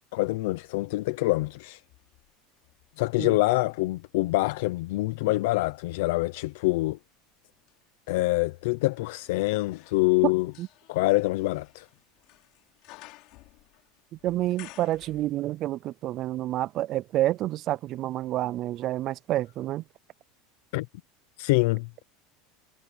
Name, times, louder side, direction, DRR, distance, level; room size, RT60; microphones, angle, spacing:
voice 1, 0.1-1.8 3.0-7.0 8.1-10.5 10.9-11.9 20.7-20.9 21.4-21.9, left 21 dB, 75° left, 0.7 m, -25 dB
sound 1, 1.7-3.8 4.4-15.7 16.0-16.1, left 21 dB, 55° left, 3.7 m, -56 dB
voice 2, 14.1-19.8, right 14 dB, 40° right, 0.3 m, -28 dB
supercardioid pair, 155°, 0 cm